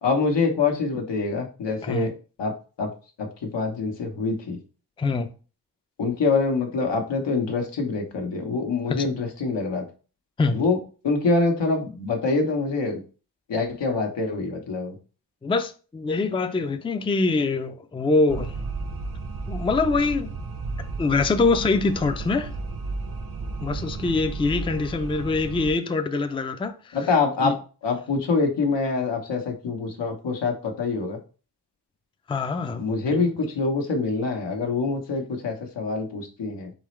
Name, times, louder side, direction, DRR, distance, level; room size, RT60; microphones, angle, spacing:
voice 1, 0.0-2.1 2.4-2.9 3.2-4.6 6.0-9.8 10.5-10.8 11.0-13.0 13.5-15.0 26.9-31.2 32.7-36.7, left 4 dB, 85° left, 1.1 m, -25 dB
voice 2, 5.0-5.3 8.9-9.1 10.4-10.6 15.4-18.5 19.5-20.3 21.0-22.5 23.6-27.0 27.4-27.5 32.3-32.8 33.1-33.2, left 3 dB, 15° left, 0.4 m, -24 dB
sound 1, 18.3-25.7, right 3 dB, 55° right, 0.7 m, -33 dB
4.1 x 3.8 x 3.1 m
wide cardioid pair, 85°, 42 cm